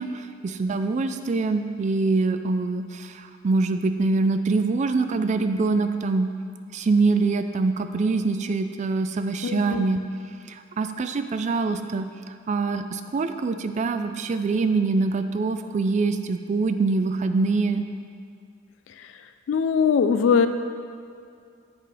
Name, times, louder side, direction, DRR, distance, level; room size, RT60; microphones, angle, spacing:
voice 1, 0.0-6.3 6.7-10.0 10.5-17.8, right 3 dB, 40° right, 9 dB, 0.3 m, -24 dB
voice 2, 9.4-9.9 19.0-19.1 19.5-20.5, left 6 dB, 80° left, 9 dB, 0.3 m, -21 dB
8.0 x 3.9 x 4.9 m, 2.4 s
head